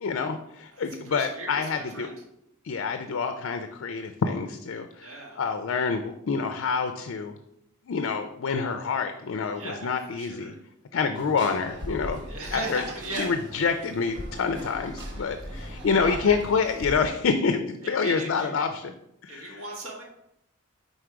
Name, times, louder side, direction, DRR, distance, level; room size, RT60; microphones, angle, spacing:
voice 1, 0.0-2.1 2.6-7.3 7.9-10.5 10.9-12.2 12.5-12.8 13.1-18.9 19.2-19.6, left 5 dB, 60° left, 7 dB, 0.4 m, -27 dB
voice 2, 0.7-2.1 5.0-5.4 9.5-9.9 10.2-10.5 12.3-13.3 16.0-16.4 17.8-18.5 19.3-20.0, right 2 dB, 90° right, -1 dB, 1.6 m, -37 dB
sound 1, 11.1-17.0, equal, 55° right, 1.1 m, -39 dB
5.0 x 4.0 x 4.6 m, 0.79 s
head